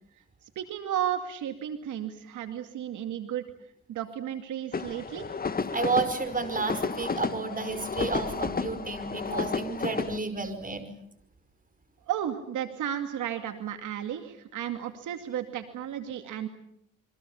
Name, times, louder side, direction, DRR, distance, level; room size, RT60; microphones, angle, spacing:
voice 1, 0.2-3.4 3.9-5.3 12.1-16.5, right 10 dB, 80° right, 7 dB, 2.5 m, -33 dB
sound 1, 4.7-10.2, left 4 dB, 30° left, 1.6 m, -32 dB
voice 2, 5.7-10.9, right 4 dB, 30° right, 10 dB, 5.2 m, -31 dB
28.0 x 24.0 x 7.2 m, 0.70 s
cardioid pair, 90°, 30 cm